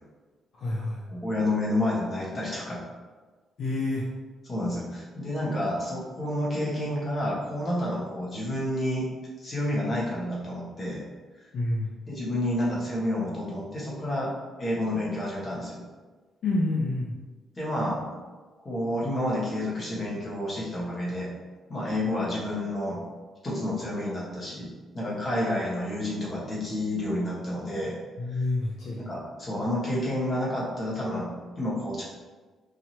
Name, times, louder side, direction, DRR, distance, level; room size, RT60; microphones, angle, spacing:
voice 1, 0.6-1.0 3.6-4.0 11.5-11.9 16.4-17.2 28.2-29.0, left 2 dB, 65° left, -4 dB, 0.6 m, -28 dB
voice 2, 1.1-2.8 4.4-9.0 9.4-11.0 12.1-14.3 14.6-15.8 17.6-18.2 18.6-21.3 21.7-23.0 23.4-27.9 28.3-28.4 29.0-32.0, left 1 dB, 30° left, -5 dB, 1.4 m, -29 dB
4.7 x 2.9 x 2.9 m, 1.4 s
cardioid pair, 120°, 0 cm